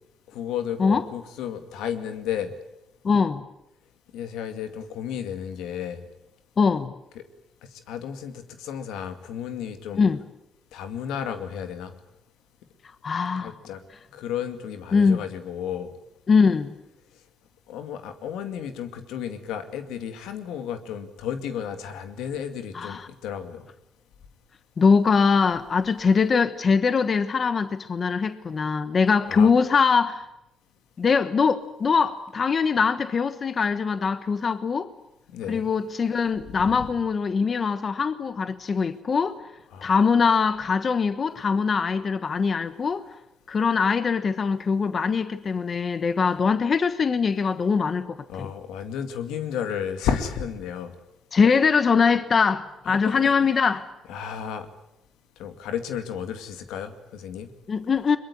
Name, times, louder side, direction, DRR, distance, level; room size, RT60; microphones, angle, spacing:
voice 1, 0.3-2.5 4.1-6.0 7.1-7.2 7.7-10.0 10.7-11.9 13.4-13.8 14.1-15.9 17.7-23.6 29.3-29.5 35.3-35.7 36.5-36.9 39.7-39.9 48.3-50.9 52.9-53.3 54.1-54.7 55.4-57.5, left 8 dB, 90° left, 2.3 m, -33 dB
voice 2, 3.0-3.5 6.6-6.9 9.9-10.2 13.0-13.5 14.9-15.2 16.3-16.7 22.7-23.1 24.8-30.3 31.0-34.9 35.5-39.4 39.8-43.0 43.5-48.5 51.3-53.9 57.7-58.2, left 5 dB, 45° left, 1.2 m, -22 dB
22.5 x 22.0 x 9.8 m
cardioid pair, 85°, 0 cm